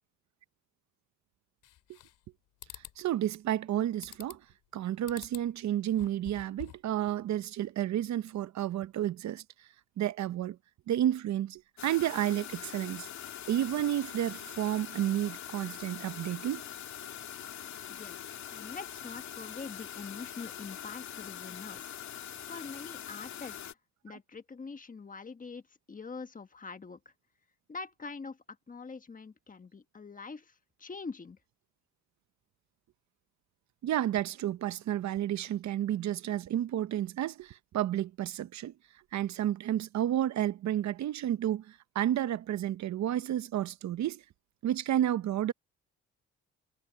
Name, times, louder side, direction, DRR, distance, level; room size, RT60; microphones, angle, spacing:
sound 1, 1.6-2.3 2.6-3.0 4.0-4.5 5.1-5.5 5.9-6.9, left 14 dB, 85° left, 2.8 m, -48 dB
voice 1, 3.0-4.4 4.7-9.4 10.0-10.6 10.9-13.1 13.5-16.7 24.1-24.2 33.8-38.7 39.1-44.2 44.6-45.5, right 12 dB, 65° right, 0.8 m, -31 dB
sound 2, 11.8-23.7, left 10 dB, 65° left, 2.4 m, -43 dB
voice 2, 17.9-22.0 22.5-23.8 24.0-25.6 25.9-27.1 27.7-31.4, left 4 dB, 25° left, 1.3 m, -44 dB
cardioid pair, 90°, 30 cm